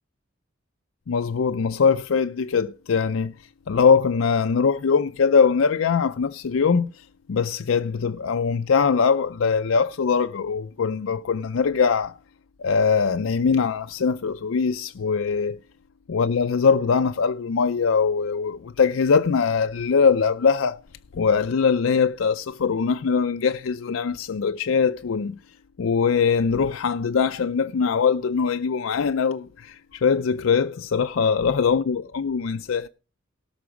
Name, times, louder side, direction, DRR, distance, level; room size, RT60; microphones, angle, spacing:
voice 1, 1.1-3.3 3.7-12.2 12.6-15.6 16.1-20.8 21.1-25.4 25.8-32.9, left 5 dB, 90° left, 0.5 m, -22 dB
17.5 x 6.1 x 5.0 m
head